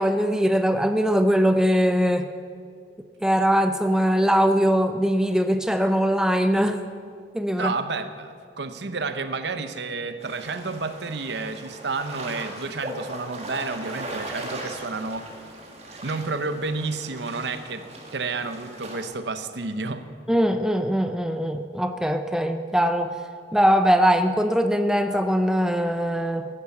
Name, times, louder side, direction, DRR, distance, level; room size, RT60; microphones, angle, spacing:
voice 1, 0.0-2.3 3.2-6.8 7.3-7.7 20.3-23.2 23.5-26.5, equal, 5° right, 8 dB, 0.4 m, -21 dB
voice 2, 7.6-15.4 16.0-20.1, right 3 dB, 65° right, 10 dB, 0.8 m, -31 dB
sound 1, 10.2-19.0, right 1 dB, 35° right, 1.9 m, -39 dB
15.5 x 11.0 x 7.1 m, 2.2 s
head